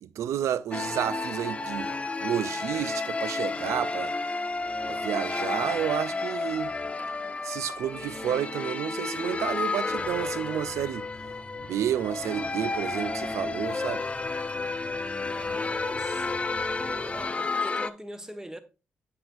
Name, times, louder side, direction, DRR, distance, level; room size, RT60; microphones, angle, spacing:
voice 1, 0.0-1.9 2.2-4.1 4.9-6.7 7.4-11.1 11.7-14.0, right 10 dB, 70° right, 0.3 m, -30 dB
Accordion-music-reverb, 0.7-17.9, left 3 dB, 25° left, 0.4 m, -31 dB
sound 1, 7.5-17.3, left 3 dB, 50° left, 1.0 m, -52 dB
voice 2, 14.8-16.3 16.8-18.6, right 1 dB, 10° right, 0.9 m, -43 dB
7.8 x 6.1 x 2.6 m
supercardioid pair, 50°, 5 cm